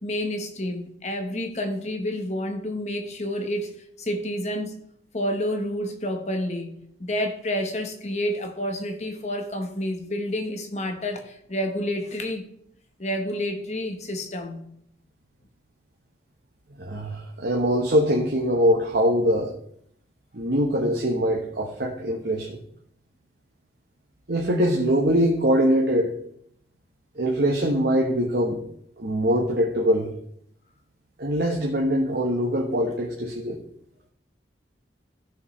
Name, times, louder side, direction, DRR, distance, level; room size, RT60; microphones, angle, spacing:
voice 1, 0.0-4.8 5.1-12.5 13.0-14.6, left 1 dB, 40° left, 1.2 m, -29 dB
voice 2, 16.8-19.5 20.3-22.6 24.3-26.1 27.2-28.6 29.0-30.1 31.2-33.6, equal, 65° right, 1.2 m, -23 dB
15.0 x 6.5 x 3.3 m
head